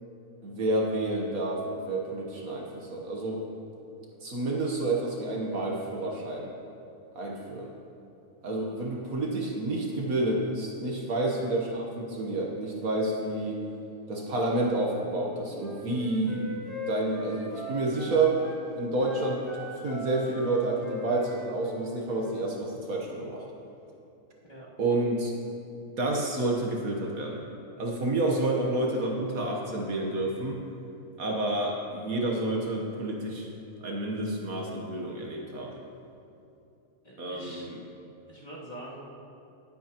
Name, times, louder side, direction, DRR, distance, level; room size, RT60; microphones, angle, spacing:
voice 1, 0.4-3.4 4.2-6.5 7.1-7.7 8.4-13.6 14.1-18.4 18.7-19.4 19.7-23.4 24.8-25.3 26.0-27.4 27.8-30.6 31.2-33.5 33.8-35.8 37.2-37.8, right 2 dB, 65° right, -1 dB, 1.5 m, -29 dB
Wind instrument woodwind instrument, 15.5-18.6 19.0-22.4, left 1 dB, ahead, 1.6 m, -41 dB
voice 2, 37.0-37.7 38.3-39.0, right 1 dB, 25° left, -9 dB, 2.6 m, -44 dB
19.5 x 8.6 x 2.9 m, 2.7 s
omnidirectional pair, 1.7 m